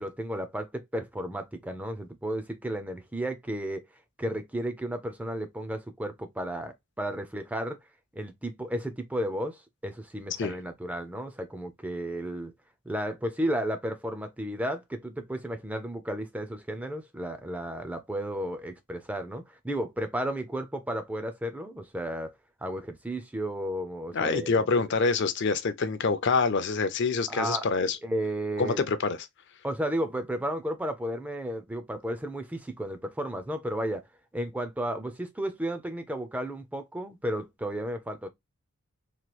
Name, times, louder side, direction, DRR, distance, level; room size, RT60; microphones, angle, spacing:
voice 1, 0.0-3.9 4.2-7.8 8.2-12.5 12.9-22.3 22.6-24.7 27.3-27.6 28.0-28.8 29.6-34.0 34.3-38.3, right 1 dB, 5° right, 0.3 m, -33 dB
voice 2, 24.1-28.0 28.6-29.2, left 4 dB, 55° left, 0.5 m, -26 dB
2.9 x 2.2 x 3.0 m
head